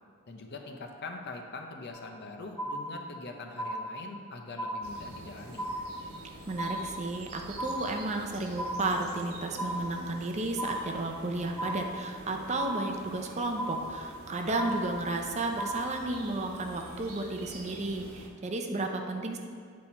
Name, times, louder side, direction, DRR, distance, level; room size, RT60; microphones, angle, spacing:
voice 1, 0.3-5.7, left 3 dB, 50° left, 3 dB, 0.7 m, -43 dB
sound 1, 1.9-2.2 2.6-3.2 3.6-4.2 4.6-5.2 5.6-6.2 6.6-7.2 7.6-8.2 8.6-9.2 9.6-10.2 10.6-11.2 11.6-12.2 12.6-13.2 13.6-14.2 14.6-15.2 15.6-16.2, right 1 dB, 15° left, 1.0 m, -36 dB
sound 2, 4.8-18.3, right 1 dB, 90° right, 1.3 m, -47 dB
voice 2, 6.5-19.4, right 2 dB, 30° right, 4 dB, 0.5 m, -33 dB
9.0 x 4.2 x 4.3 m, 2.2 s
head